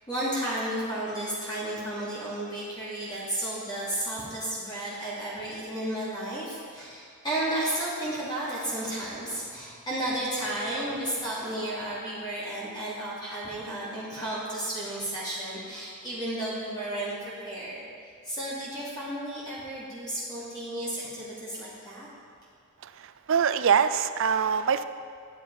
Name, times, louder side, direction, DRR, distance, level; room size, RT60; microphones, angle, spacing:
voice 1, 0.1-17.9 18.2-22.1, right 1 dB, 20° left, -9 dB, 2.8 m, -33 dB
voice 2, 23.3-24.8, right 7 dB, 60° right, 12 dB, 0.4 m, -23 dB
11.0 x 8.2 x 4.8 m, 2.2 s
head